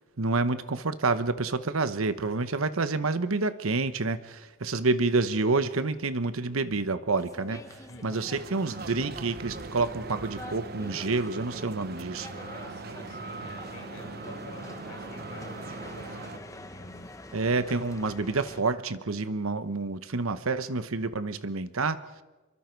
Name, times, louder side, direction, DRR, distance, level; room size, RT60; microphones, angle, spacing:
voice 1, 0.2-12.3 17.3-22.0, right 3 dB, 75° right, 12 dB, 1.0 m, -28 dB
sound 1, 7.2-18.6, left 1 dB, 15° left, 1.0 m, -46 dB
voice 2, 7.9-8.3 12.3-17.1, left 1 dB, 60° left, 3 dB, 4.6 m, -47 dB
sound 2, 8.3-16.4, right 3 dB, 45° right, 0.7 m, -41 dB
27.0 x 23.5 x 4.6 m, 1.2 s
head